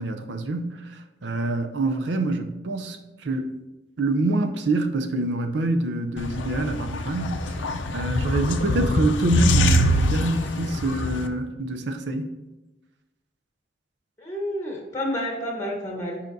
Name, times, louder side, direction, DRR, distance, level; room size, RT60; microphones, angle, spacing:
voice 1, 0.0-3.0 3.2-3.5 4.0-7.6 7.9-12.3, right 2 dB, 70° right, 0.5 m, -26 dB
sound 1, 6.2-11.3, equal, 85° left, 0.5 m, -24 dB
voice 2, 14.2-16.2, equal, 15° left, 0.9 m, -29 dB
9.0 x 5.0 x 2.6 m
head